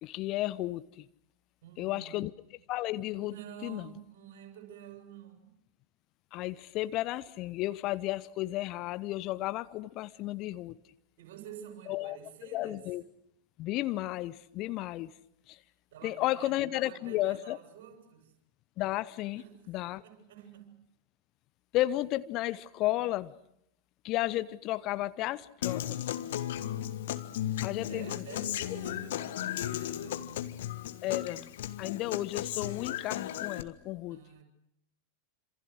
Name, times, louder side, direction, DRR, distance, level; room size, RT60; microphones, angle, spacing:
voice 1, 0.0-1.1 1.8-2.3 2.7-3.3 3.6-3.9 6.3-10.8 11.9-12.2 12.4-13.0 13.6-15.1 15.5-15.6 16.0-17.6 18.8-20.0 21.7-23.3 24.0-26.0 27.6-28.2 31.0-31.5 31.8-34.2, left 16 dB, 40° left, 15 dB, 0.9 m, -33 dB
voice 2, 1.6-2.2 3.2-5.5 10.1-10.2 11.2-12.9 15.9-18.3 19.3-19.7 20.0-20.8 26.2-27.4 27.8-30.6 34.1-34.4, right 9 dB, 55° right, 5 dB, 7.5 m, -49 dB
Human voice / Acoustic guitar, 25.6-33.6, left 12 dB, 60° left, 1.5 m, -35 dB
27.5 x 27.5 x 6.5 m, 0.76 s
figure-of-eight pair, 90°, 0 cm